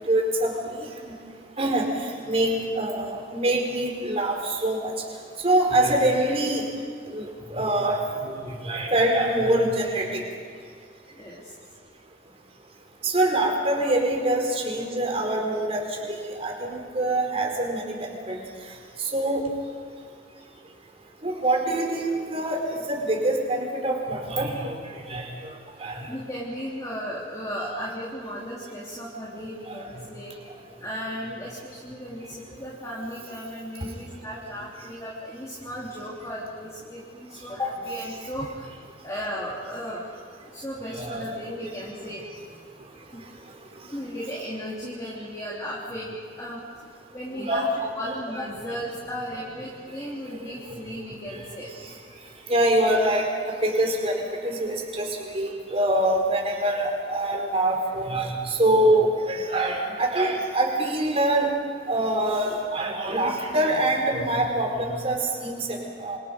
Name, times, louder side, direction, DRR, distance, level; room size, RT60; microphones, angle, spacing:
voice 1, 0.1-0.8 1.0-1.1 1.6-1.9 2.2-4.9 5.4-6.6 7.1-10.2 13.0-15.8 16.1-17.9 18.3-18.4 19.1-19.5 21.2-24.8 25.1-25.2 25.8-26.0 29.7-29.8 40.9-41.3 47.3-47.7 48.1-48.2 52.5-55.1 55.3-61.5 61.9-66.2, right 1 dB, 35° right, 1 dB, 4.5 m, -24 dB
voice 2, 11.1-11.5 26.1-30.3 30.8-38.7 39.0-40.1 40.4-42.4 43.1-43.2 43.9-46.6 47.1-47.7 48.0-51.7, equal, 20° left, -6 dB, 3.5 m, -35 dB
27.0 x 26.5 x 5.3 m, 2.2 s
head